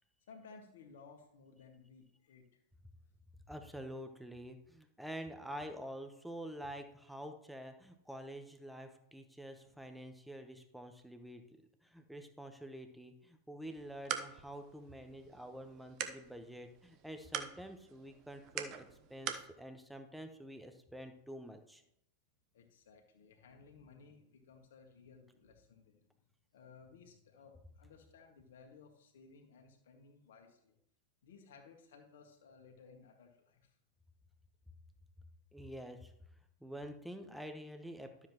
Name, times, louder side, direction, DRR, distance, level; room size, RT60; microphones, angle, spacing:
voice 1, 0.3-2.6 9.6-9.7 22.5-26.2 26.5-30.8 31.2-33.8, left 5 dB, 60° left, 2 dB, 1.8 m, -59 dB
voice 2, 3.5-11.4 11.8-21.8 35.5-36.1 36.6-38.3, equal, ahead, 6 dB, 1.1 m, -48 dB
sound 1, 13.7-19.5, right 9 dB, 40° right, 0.9 m, -45 dB
12.5 x 7.4 x 3.1 m, 0.76 s
figure-of-eight pair, 90°, 0 cm